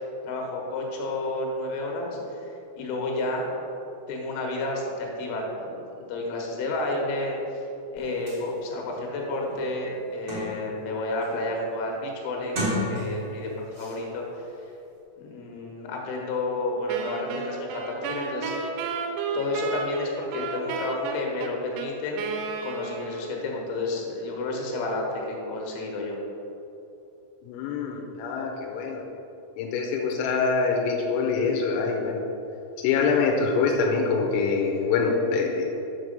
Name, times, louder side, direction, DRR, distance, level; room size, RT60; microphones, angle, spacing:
voice 1, 0.2-2.5 2.8-3.5 4.1-7.6 7.9-14.5 15.2-18.8 19.3-22.2 22.6-26.2, left 2 dB, 75° left, 0 dB, 3.4 m, -31 dB
sound 1, 8.3-8.4 9.0-9.1 9.5-10.8 11.2-11.6 12.4-13.4 13.7-14.0, equal, 55° right, 1.3 m, -32 dB
Wind instrument woodwind instrument, 16.9-23.5, right 4 dB, 90° right, 3.4 m, -32 dB
voice 2, 27.4-29.0 29.6-32.2 32.8-35.7, left 4 dB, 90° left, 1 dB, 3.5 m, -25 dB
7.6 x 6.2 x 5.2 m, 2.9 s
omnidirectional pair, 5.9 m